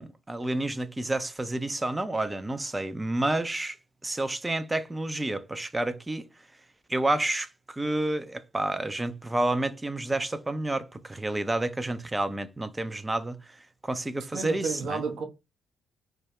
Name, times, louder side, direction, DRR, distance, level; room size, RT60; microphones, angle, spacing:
voice 1, 0.0-3.8 4.0-6.3 6.9-13.4 13.8-15.0, right 2 dB, 15° right, 0.4 m, -29 dB
voice 2, 14.3-15.2, right 4 dB, 60° right, 0.6 m, -31 dB
2.2 x 2.1 x 3.5 m
figure-of-eight pair, 45°, 0 cm